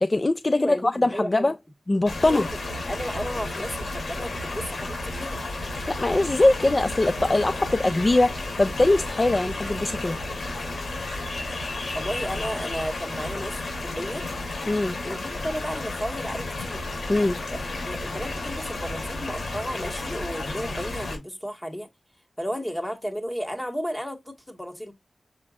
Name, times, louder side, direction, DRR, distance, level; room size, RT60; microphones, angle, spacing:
voice 1, 0.0-1.5 1.9-2.5 5.9-10.2 14.7-15.0 17.1-17.4, left 2 dB, 35° left, 0.6 m, -22 dB
voice 2, 0.5-1.5 2.2-2.5 2.9-5.4 11.9-14.2 15.0-16.9 17.5-21.9 22.4-24.9, equal, 10° left, 2.1 m, -33 dB
sound 1, 2.1-21.2, left 2 dB, 75° left, 3.3 m, -32 dB
6.9 x 5.2 x 2.6 m
cardioid pair, 50°, 0 cm